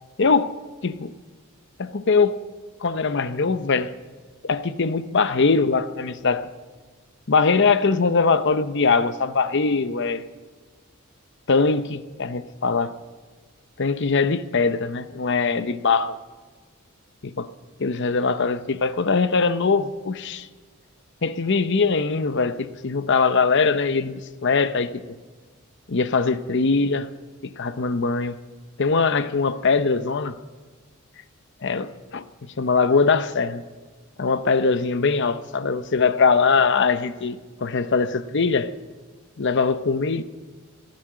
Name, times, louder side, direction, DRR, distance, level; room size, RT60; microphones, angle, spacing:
voice 1, 0.2-0.5 0.8-1.1 1.8-2.4 2.8-3.9 4.4-6.5 7.3-10.3 11.5-12.9 13.8-16.2 17.4-17.5 17.8-20.5 21.2-25.0 25.9-27.1 27.4-28.4 28.8-30.4 31.6-32.2 32.6-33.6 34.2-38.7 39.4-40.2, left 4 dB, 55° left, 0.8 m, -21 dB
17.5 x 10.5 x 7.6 m
head